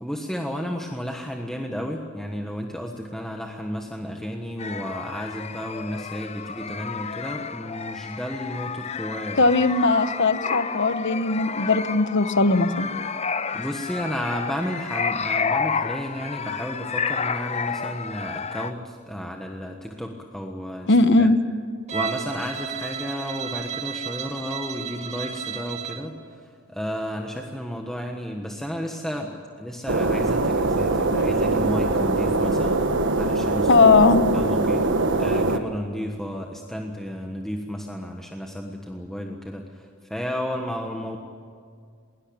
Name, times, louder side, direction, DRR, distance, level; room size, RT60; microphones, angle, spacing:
voice 1, 0.0-9.5 13.5-21.3 21.9-32.8 33.2-33.8 34.3-34.8 35.2-41.2, equal, ahead, 2 dB, 1.3 m, -32 dB
sound 1, 4.6-18.7, left 5 dB, 30° left, 0.7 m, -30 dB
voice 2, 9.4-12.9 20.9-21.4 31.1-31.4 33.7-34.2, left 3 dB, 55° left, 12 dB, 1.1 m, -19 dB
Bowed string instrument, 21.9-26.1, right 7 dB, 30° right, 2.0 m, -33 dB
sound 2, 29.9-35.6, right 2 dB, 55° right, 1.2 m, -22 dB
21.0 x 20.0 x 8.8 m, 2.2 s
head